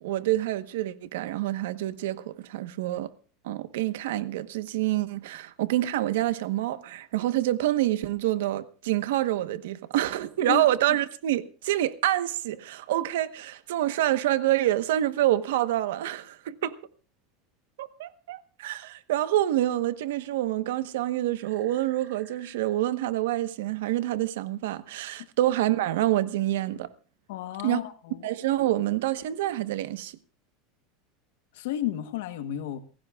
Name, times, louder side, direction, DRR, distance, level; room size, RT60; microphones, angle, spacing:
voice 1, 0.0-3.1 3.4-16.7 17.8-26.9 27.6-27.8 28.2-30.2, right 14 dB, 90° right, 1.1 m, -27 dB
voice 2, 10.4-11.0 27.3-28.3 31.5-32.8, left 11 dB, 75° left, 1.1 m, -33 dB
sound 1, 21.4-22.7 23.7-23.8, right 6 dB, 40° right, 4.4 m, -55 dB
28.0 x 15.5 x 2.4 m
supercardioid pair, 175°, 0 cm